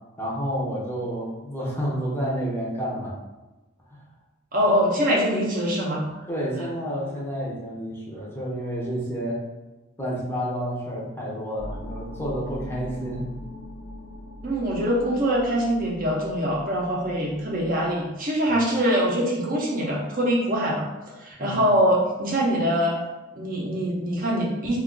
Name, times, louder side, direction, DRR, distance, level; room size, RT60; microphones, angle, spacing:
voice 1, 0.2-3.1 3.9-4.0 6.3-9.4 10.0-13.2 21.4-21.6, equal, 10° left, -5 dB, 0.6 m, -30 dB
voice 2, 4.5-6.0 14.4-20.9 21.2-23.0 23.4-24.8, equal, 40° right, -3 dB, 0.6 m, -23 dB
sound 1, 11.6-17.9, left 1 dB, 80° left, 0.6 m, -40 dB
2.4 x 2.3 x 3.7 m, 1.1 s
head